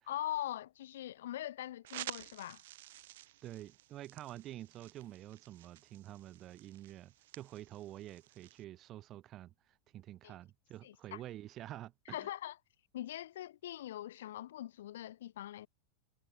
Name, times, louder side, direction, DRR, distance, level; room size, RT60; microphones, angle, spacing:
voice 1, 0.1-2.6 10.2-10.3 10.8-11.2 12.1-12.6 12.9-15.7, left 13 dB, 60° left, 0.9 m, -42 dB
sound 1, 1.8-8.6, right 16 dB, 55° right, 2.2 m, -51 dB
voice 2, 3.4-9.5 9.9-12.3, right 13 dB, 35° right, 2.9 m, -48 dB
figure-of-eight pair, 90°, 0 cm